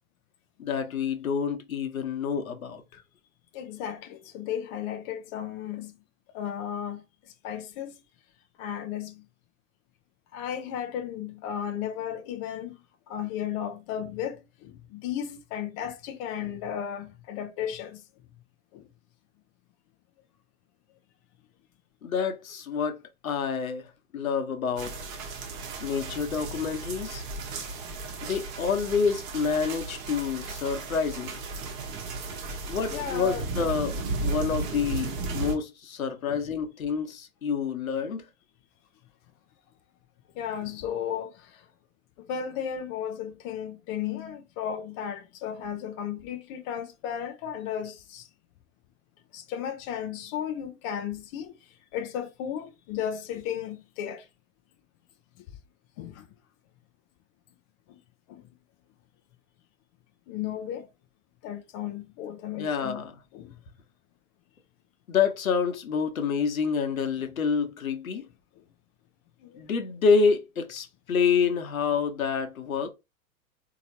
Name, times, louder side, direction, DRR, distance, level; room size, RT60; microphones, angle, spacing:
voice 1, 0.6-2.8 22.0-23.0 23.2-23.9 24.1-25.0 25.8-27.2 28.2-31.4 32.7-38.2 62.5-63.1 65.1-68.2 69.6-72.9, left 6 dB, 70° left, 1.1 m, -28 dB
voice 2, 3.5-5.9 6.3-7.0 7.4-7.9 8.6-9.2 10.3-12.7 13.1-18.0 18.7-18.8 32.3-32.4 32.9-33.4 36.2-36.4 40.4-41.6 42.3-48.3 49.3-51.5 51.9-54.3 55.4-55.5 56.0-56.3 57.9-58.0 58.3-58.4 60.3-60.9 61.4-63.0 63.3-63.5 68.1-68.2 69.4-69.6, left 9 dB, 25° left, 0.4 m, -34 dB
sound 1, 24.8-35.5, right 3 dB, 35° right, 1.1 m, -35 dB
4.0 x 2.9 x 2.7 m
figure-of-eight pair, 105°, 42 cm